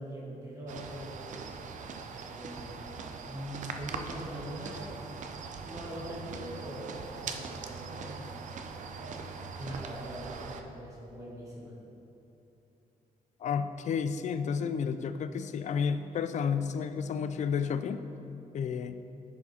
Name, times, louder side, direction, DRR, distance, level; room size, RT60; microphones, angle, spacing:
voice 1, 0.0-1.4 2.2-2.8 3.3-5.3 5.6-8.3 9.6-11.7, equal, 25° right, -6 dB, 1.5 m, -42 dB
sound 1, 0.7-10.6, right 5 dB, 60° right, 0.5 m, -41 dB
voice 2, 13.4-18.0 18.5-19.0, left 6 dB, 55° left, 11 dB, 0.4 m, -31 dB
10.5 x 4.8 x 4.2 m, 2.9 s
wide cardioid pair, 150°, 15 cm